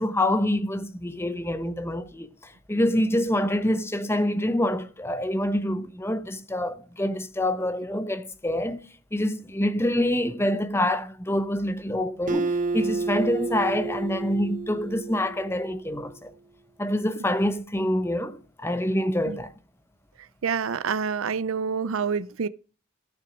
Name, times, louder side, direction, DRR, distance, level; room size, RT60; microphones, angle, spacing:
voice 1, 0.0-8.8 9.1-16.3 16.8-19.5, left 1 dB, 10° left, 0.7 m, -26 dB
Acoustic guitar, 12.3-15.8, right 3 dB, 35° right, 1.0 m, -30 dB
voice 2, 20.4-22.5, right 6 dB, 65° right, 0.5 m, -27 dB
14.0 x 6.0 x 5.1 m
head